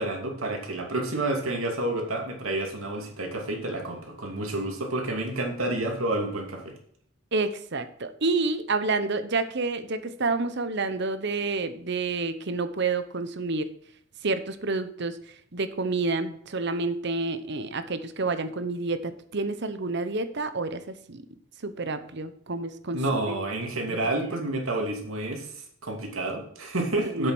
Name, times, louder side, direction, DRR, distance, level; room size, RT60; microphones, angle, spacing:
voice 1, 0.0-6.7 22.9-27.3, right 2 dB, 85° right, 2 dB, 2.6 m, -29 dB
voice 2, 7.3-13.7 14.2-15.2 15.5-21.2 21.6-23.0 23.3-23.4 23.9-24.0 27.0-27.3, right 3 dB, 55° right, 11 dB, 1.0 m, -29 dB
8.0 x 7.4 x 6.2 m, 0.64 s
head